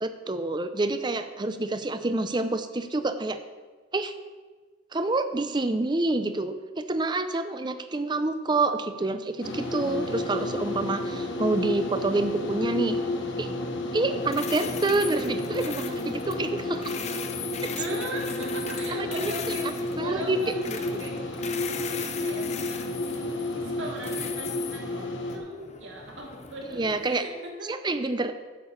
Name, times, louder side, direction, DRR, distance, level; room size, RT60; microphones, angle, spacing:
voice 1, 0.0-3.4 3.9-4.1 4.9-13.0 13.4-13.5 13.9-17.0 17.6-17.7 19.1-19.3 20.0-20.4 20.7-20.8 26.8-27.2 27.7-28.3, right 2 dB, 25° right, 9 dB, 0.5 m, -27 dB
sound 1, 9.4-25.4, left 2 dB, 75° left, 1.3 m, -31 dB
voice 2, 14.1-14.5 17.7-21.2 21.7-27.7, right 1 dB, 85° right, -1 dB, 2.0 m, -39 dB
sound 2, 14.2-27.1, left 7 dB, 35° left, 0.6 m, -39 dB
8.1 x 6.8 x 7.3 m, 1.4 s
head